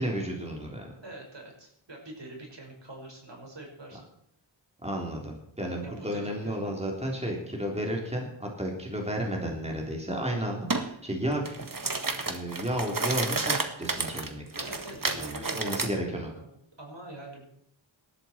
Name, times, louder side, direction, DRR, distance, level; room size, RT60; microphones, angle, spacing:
voice 1, 0.0-0.9 4.8-11.7 12.2-14.4 15.2-16.3, equal, 15° right, 0 dB, 3.7 m, -32 dB
voice 2, 1.0-4.0 5.8-6.8 14.6-16.5 16.8-17.4, right 1 dB, 65° right, 1 dB, 5.5 m, -44 dB
sound 1, 10.7-10.9 11.3-15.9, right 3 dB, 45° right, 1.8 m, -31 dB
19.0 x 13.0 x 4.5 m, 0.72 s
wide cardioid pair, 65°, 47 cm